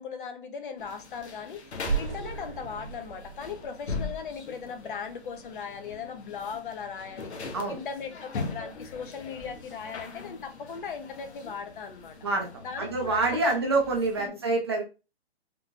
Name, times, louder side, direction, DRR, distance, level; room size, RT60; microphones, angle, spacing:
voice 1, 0.0-7.3 7.7-12.2 12.6-13.6 14.2-14.4, left 6 dB, 50° left, 0.7 m, -38 dB
sound 1, 0.8-14.3, left 4 dB, 80° left, 1.0 m, -41 dB
sound 2, 1.9-4.9, right 5 dB, 60° right, 0.7 m, -35 dB
voice 2, 12.8-14.8, right 3 dB, 25° right, 0.4 m, -26 dB
3.7 x 2.8 x 2.4 m
hypercardioid pair, 160°, 33 cm